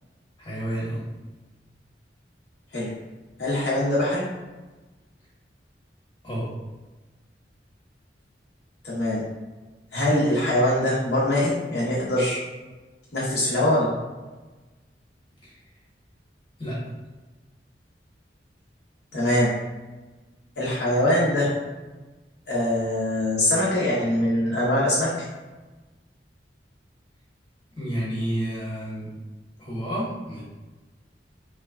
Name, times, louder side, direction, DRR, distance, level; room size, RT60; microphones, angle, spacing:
voice 1, 0.4-1.0 6.2-6.5 15.4-15.5 16.6-16.8 27.8-29.1 29.6-30.4, right 1 dB, 30° left, -8 dB, 1.1 m, -30 dB
voice 2, 3.4-4.2 8.8-9.2 9.9-12.4 13.1-13.9 19.1-19.5 20.6-21.5 22.5-25.3, left 1 dB, 65° left, -8 dB, 0.7 m, -23 dB
3.1 x 2.1 x 2.3 m, 1.2 s
head